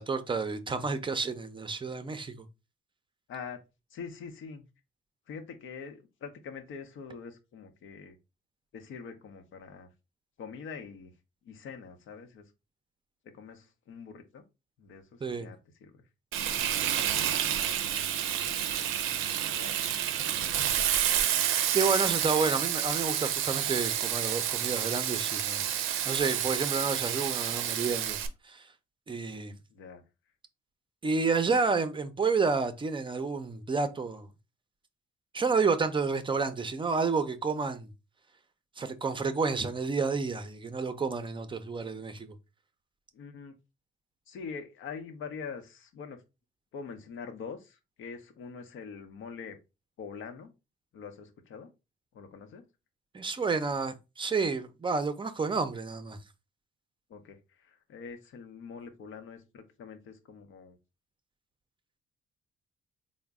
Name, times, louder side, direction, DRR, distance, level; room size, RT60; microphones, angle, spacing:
voice 1, 0.0-2.5 15.2-15.5 21.7-25.7 26.0-28.2 28.4-28.7 29.1-29.5 31.0-34.3 35.3-37.9 38.8-42.3 53.1-56.2, right 4 dB, 25° right, 0.5 m, -30 dB
voice 2, 3.3-3.6 3.9-4.7 5.3-8.2 8.7-9.9 10.4-11.1 11.4-12.4 13.2-14.4 14.8-16.0 16.8-18.9 19.4-19.9 20.2-20.9 29.7-30.0 43.1-43.6 44.3-46.2 46.7-49.6 50.0-50.5 50.9-51.7 52.1-52.6 57.1-60.8, left 5 dB, 80° left, 0.7 m, -44 dB
Frying (food), 16.3-28.3, right 10 dB, 90° right, 0.5 m, -29 dB
3.8 x 2.1 x 3.4 m
cardioid pair, 90°, 20 cm